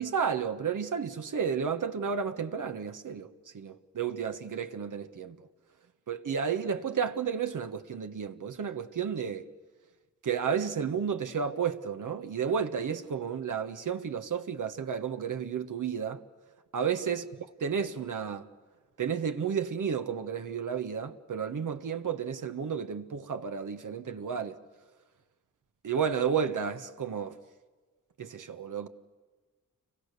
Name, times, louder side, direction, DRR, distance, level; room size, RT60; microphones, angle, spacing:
voice 1, 0.0-5.5 6.1-9.5 10.2-16.2 16.7-17.3 17.6-18.5 19.0-24.6 25.8-27.4 28.2-28.9, right 7 dB, 75° right, 1.3 m, -32 dB
29.5 x 23.5 x 6.8 m
cardioid pair, 50°, 32 cm